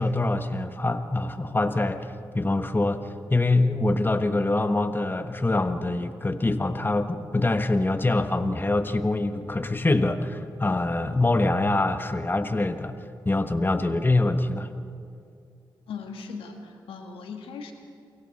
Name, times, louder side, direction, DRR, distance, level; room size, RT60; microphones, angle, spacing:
voice 1, 0.0-2.1 2.3-13.0 13.2-14.7, left 2 dB, 25° left, 9 dB, 1.3 m, -24 dB
voice 2, 15.9-17.7, left 5 dB, 85° left, 4 dB, 1.9 m, -38 dB
28.5 x 23.0 x 4.2 m, 2.5 s
supercardioid pair, 50°, 9 cm